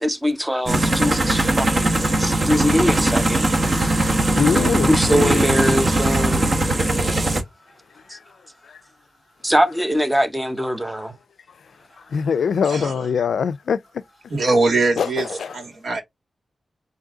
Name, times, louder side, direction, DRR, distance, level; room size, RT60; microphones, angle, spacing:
voice 1, 0.0-1.7 2.2-3.4 4.9-6.5 9.4-11.1, equal, 5° right, 0.7 m, -22 dB
sound 1, 0.7-7.4, right 2 dB, 35° right, 0.9 m, -20 dB
voice 2, 4.3-5.8 6.8-6.9 12.1-13.8 15.0-15.6, left 6 dB, 90° left, 0.3 m, -23 dB
voice 3, 14.3-15.3 15.5-16.0, right 3 dB, 65° right, 1.6 m, -21 dB
3.8 x 2.6 x 3.6 m
wide cardioid pair, 140°, 0 cm